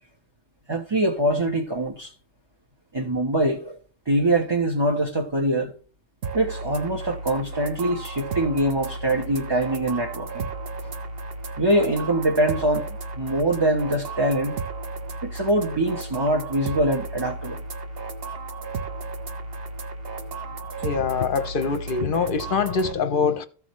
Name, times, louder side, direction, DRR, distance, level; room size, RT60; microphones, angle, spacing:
voice 1, 0.7-2.1 2.9-3.8 4.1-5.7 6.3-10.5 10.8-10.9 11.6-14.6 15.2-17.6, right 1 dB, 20° right, 1.1 m, -23 dB
sound 1, 6.2-22.9, right 3 dB, 55° right, 1.1 m, -34 dB
voice 2, 20.8-23.5, left 5 dB, 50° left, 0.8 m, -24 dB
14.5 x 6.2 x 3.1 m
omnidirectional pair, 1.3 m